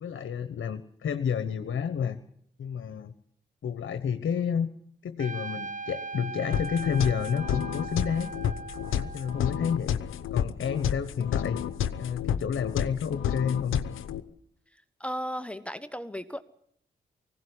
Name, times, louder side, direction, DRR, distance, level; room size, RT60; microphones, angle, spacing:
voice 1, 0.0-2.2 2.6-3.1 3.6-4.7 5.0-8.3 8.9-10.0 10.3-11.6 12.0-13.8, left 7 dB, 70° left, 10 dB, 1.2 m, -30 dB
Trumpet, 5.2-9.9, right 3 dB, 40° right, 1.2 m, -39 dB
sound 1, 6.5-14.2, left 9 dB, 90° left, 0.9 m, -31 dB
voice 2, 15.0-16.4, equal, 5° left, 13 dB, 1.3 m, -35 dB
19.0 x 17.0 x 10.0 m, 0.66 s
supercardioid pair, 40°, 20 cm